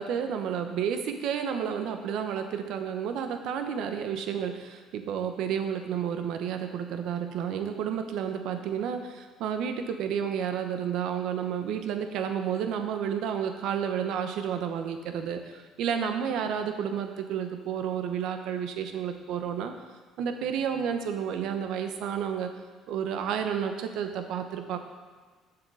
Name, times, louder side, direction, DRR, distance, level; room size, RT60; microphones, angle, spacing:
voice 1, 0.0-19.7 20.2-22.5 22.9-24.8, right 8 dB, 70° right, 7 dB, 1.0 m, -31 dB
7.9 x 7.3 x 6.3 m, 1.4 s
cardioid pair, 105°, 0 cm